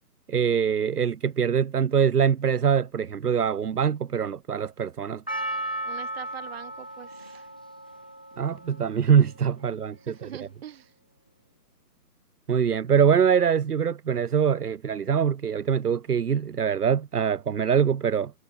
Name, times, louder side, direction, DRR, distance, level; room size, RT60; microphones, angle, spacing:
voice 1, 0.3-5.2 8.4-10.3 12.5-18.3, right 7 dB, 70° right, 1.2 m, -23 dB
Percussion, 5.3-9.6 10.3-10.4, right 1 dB, 5° left, 0.5 m, -35 dB
voice 2, 5.9-7.5 10.0-10.9, right 11 dB, 40° right, 5.2 m, -43 dB
figure-of-eight pair, 150°, 47 cm